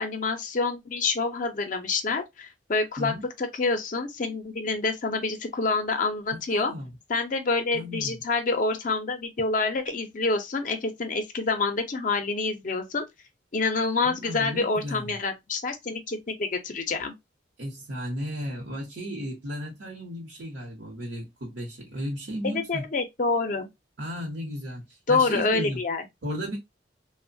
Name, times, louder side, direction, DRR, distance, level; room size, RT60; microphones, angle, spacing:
voice 1, 0.0-6.7 7.1-13.0 13.5-17.1 22.4-23.7 25.1-26.0, left 3 dB, 45° left, 0.5 m, -27 dB
voice 2, 6.5-6.9 7.7-8.2 14.0-15.2 17.6-22.8 24.0-25.8 26.2-26.6, equal, 75° right, 0.8 m, -34 dB
3.0 x 2.1 x 2.5 m
head